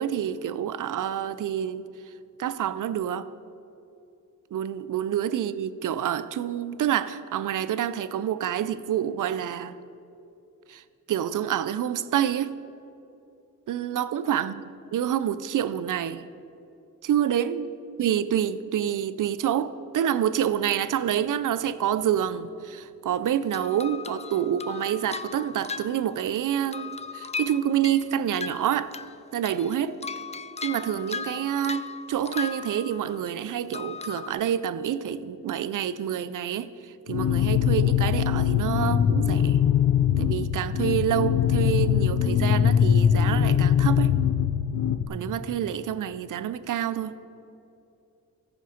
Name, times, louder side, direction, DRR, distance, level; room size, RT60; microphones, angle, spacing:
voice 1, 0.0-2.1 2.4-3.3 4.5-9.8 10.7-10.8 11.1-12.5 13.7-14.6 14.9-16.3 17.0-17.7 18.0-29.0 29.3-30.0 30.6-39.6 40.2-44.1 45.1-47.1, right 10 dB, 60° right, 0.5 m, -27 dB
sound 1, 23.5-26.4 26.7-29.2 29.5-33.3 33.7-34.3, left 5 dB, 20° left, 0.4 m, -37 dB
sound 2, 37.1-45.1, left 9 dB, 65° left, 0.6 m, -22 dB
14.5 x 5.2 x 5.0 m
cardioid pair, 60°, 35 cm